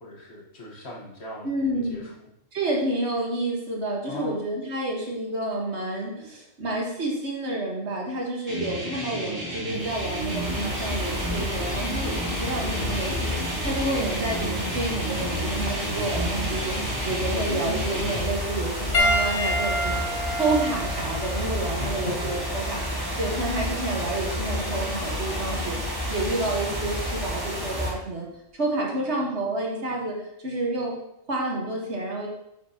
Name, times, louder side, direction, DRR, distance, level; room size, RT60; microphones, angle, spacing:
voice 1, 0.0-2.3 4.1-4.4 21.8-22.3, left 2 dB, 55° left, -2 dB, 1.7 m, -39 dB
voice 2, 1.4-2.0 2.5-20.0 20.3-22.8 23.2-25.8 26.1-28.3 28.5-30.2 30.4-30.9 31.3-32.3, right 2 dB, 60° right, -2 dB, 1.8 m, -29 dB
sound 1, 8.5-18.2, right 1 dB, 45° right, 2.7 m, -32 dB
sound 2, 9.7-27.9, left 1 dB, 20° right, 1.5 m, -30 dB
Piano, 18.9-23.6 24.5-24.7 26.7-26.8, equal, 40° left, 0.9 m, -29 dB
9.3 x 6.0 x 2.9 m, 0.79 s
omnidirectional pair, 1.3 m